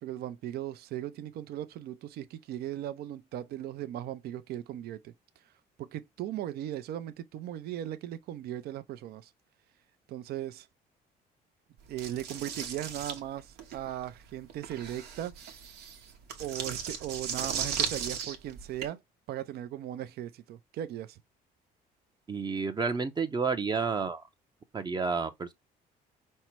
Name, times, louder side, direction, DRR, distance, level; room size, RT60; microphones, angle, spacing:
voice 1, 0.0-5.1 5.8-9.3 10.1-10.7 11.9-15.3 16.4-19.0 19.3-21.2, right 12 dB, 65° right, 0.6 m, -38 dB
sound 1, 12.0-18.9, right 7 dB, 85° right, 1.1 m, -36 dB
voice 2, 22.3-24.2 24.7-25.5, right 5 dB, 25° right, 0.6 m, -30 dB
5.4 x 2.1 x 4.5 m
cardioid pair, 110°, 17 cm